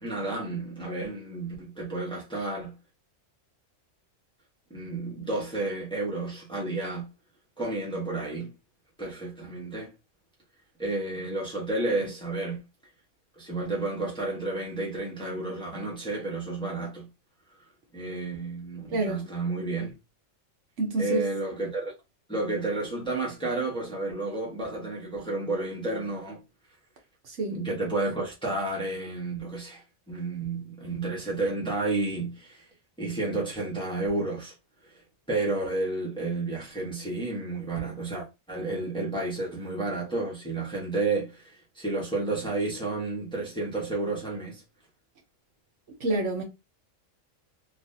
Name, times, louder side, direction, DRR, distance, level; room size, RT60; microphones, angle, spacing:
voice 1, 0.0-2.7 4.7-7.1 7.6-8.5 9.0-9.9 10.8-12.6 13.4-17.1 17.9-19.9 21.0-21.9 22.3-26.4 27.5-32.7 33.0-34.5 35.3-44.6, right 2 dB, 5° left, 1.0 m, -31 dB
voice 2, 18.9-19.2 20.8-21.2 27.2-27.6 46.0-46.4, right 2 dB, 65° right, 1.2 m, -27 dB
3.6 x 2.5 x 2.7 m
omnidirectional pair, 1.4 m